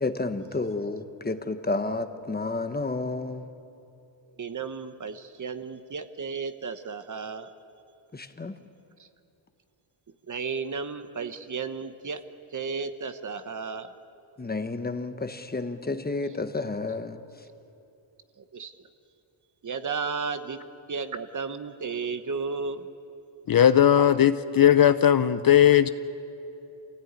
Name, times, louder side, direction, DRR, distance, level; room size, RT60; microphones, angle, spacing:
voice 1, 0.0-3.5 8.1-8.5 14.4-17.2, left 3 dB, 20° left, 9 dB, 1.1 m, -31 dB
voice 2, 4.4-7.5 9.0-9.1 10.2-12.2 12.5-13.9 18.4-18.9 19.6-20.6 20.9-22.9, right 5 dB, 35° right, 10 dB, 1.1 m, -33 dB
voice 3, 23.5-25.9, left 10 dB, 45° left, 12 dB, 0.6 m, -18 dB
27.5 x 16.5 x 9.5 m, 2.9 s
wide cardioid pair, 145°, 49 cm